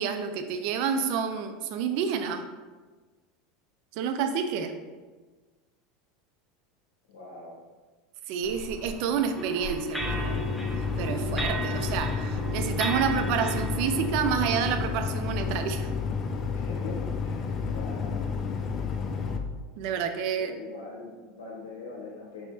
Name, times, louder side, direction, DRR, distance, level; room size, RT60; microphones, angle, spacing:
voice 1, 0.0-2.4 4.0-4.7 8.3-10.4 11.0-15.9 19.8-20.5, right 7 dB, 60° right, 7 dB, 0.4 m, -29 dB
voice 2, 7.1-7.6 11.1-11.2 16.5-18.2 20.4-22.5, left 3 dB, 75° left, -3 dB, 1.0 m, -42 dB
sound 1, 8.4-13.6, right 1 dB, 30° right, 0.9 m, -45 dB
sound 2, 9.4-14.7, right 3 dB, ahead, 0.7 m, -35 dB
sound 3, 10.0-19.4, left 5 dB, 40° left, 0.5 m, -31 dB
4.7 x 4.1 x 2.7 m, 1.3 s
hypercardioid pair, 90°, 0 cm